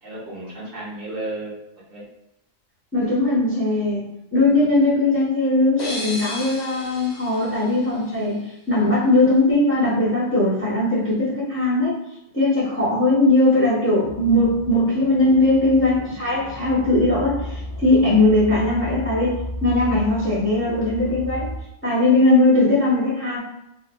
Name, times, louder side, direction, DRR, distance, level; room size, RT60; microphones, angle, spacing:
voice 1, 0.0-2.0, right 2 dB, 75° right, -5 dB, 1.5 m, -33 dB
voice 2, 2.9-4.0 4.3-8.4 8.7-11.9 12.3-21.5 21.8-23.4, left 2 dB, 10° left, -7 dB, 0.9 m, -19 dB
sound 1, 5.8-8.6, left 2 dB, 50° left, 0.5 m, -35 dB
sound 2, 14.0-21.6, left 1 dB, 65° left, 0.9 m, -34 dB
4.1 x 2.4 x 2.2 m, 0.87 s
omnidirectional pair, 1.3 m